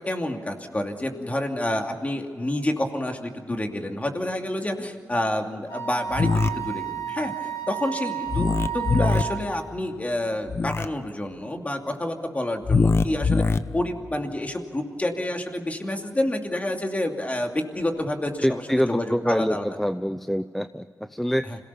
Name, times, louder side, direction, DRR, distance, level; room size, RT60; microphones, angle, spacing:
voice 1, 0.1-13.4 13.7-18.6 18.9-19.7 21.5-21.6, left 1 dB, 25° left, 4 dB, 2.6 m, -28 dB
Wind instrument woodwind instrument, 5.7-9.5, right 10 dB, 70° left, 5.0 m, -32 dB
sound 1, 6.1-6.5 8.3-9.2 10.5-10.9 12.6-13.6, left 4 dB, 45° left, 0.8 m, -21 dB
voice 2, 18.4-21.4, equal, 5° left, 11 dB, 0.5 m, -25 dB
26.5 x 18.0 x 7.1 m, 2.1 s
cardioid pair, 80°, 6 cm